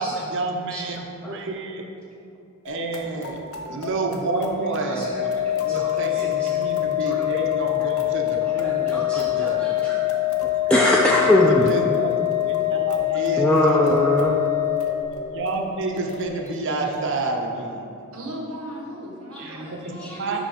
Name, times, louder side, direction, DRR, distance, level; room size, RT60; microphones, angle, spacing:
voice 1, 0.0-1.9 2.6-3.4 3.7-5.0 5.6-9.8 10.7-10.8 11.3-12.2 12.5-14.0 15.3-17.9 19.4-20.4, right 2 dB, 55° right, 2 dB, 0.6 m, -29 dB
sound 1, 2.6-17.0, left 1 dB, 75° left, 0.7 m, -39 dB
Organ, 4.9-15.6, left 15 dB, 55° left, 1.0 m, -24 dB
voice 2, 5.7-6.5 7.1-7.3 8.4-10.0 10.4-11.7 13.4-14.4 19.3-19.6 20.0-20.4, left 1 dB, 5° left, -4 dB, 0.3 m, -23 dB
voice 3, 18.1-20.4, right 1 dB, 80° right, -1 dB, 1.3 m, -36 dB
5.5 x 5.1 x 4.9 m, 2.7 s
head